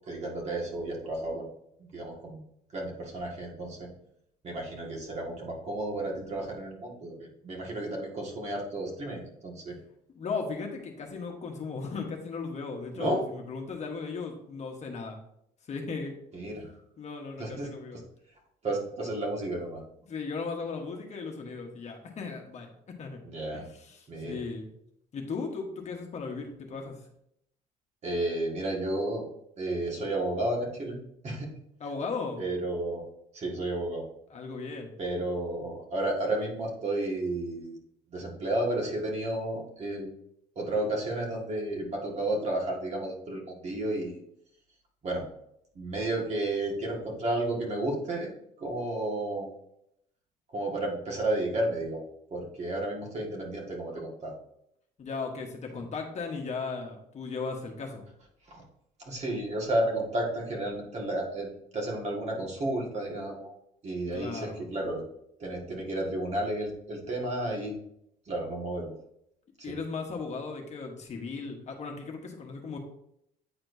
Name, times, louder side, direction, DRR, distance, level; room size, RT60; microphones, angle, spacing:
voice 1, 0.1-1.4 1.9-2.4 2.7-3.9 4.4-7.2 7.4-9.8 12.9-13.2 16.3-16.7 17.4-17.7 18.6-19.8 23.2-23.6 24.1-24.4 28.0-29.3 29.6-31.0 31.2-31.5 32.4-33.0 33.3-34.0 35.0-37.7 38.1-40.1 40.6-44.2 45.0-45.2 45.8-48.3 48.6-49.5 50.5-52.0 52.3-54.3 58.5-58.6 59.0-63.5 63.8-65.0 65.4-67.8 68.3-68.9 69.6-69.7, right 1 dB, 40° right, -1 dB, 1.8 m, -32 dB
voice 2, 10.1-15.2 15.7-16.1 16.5-16.6 17.0-18.0 20.0-23.2 23.5-24.7 25.1-26.9 31.8-32.4 34.3-34.9 55.0-58.0 64.1-64.7 69.6-72.8, left 4 dB, 40° left, 2 dB, 1.2 m, -37 dB
8.8 x 4.3 x 2.7 m, 0.75 s
cardioid pair, 110°, 17 cm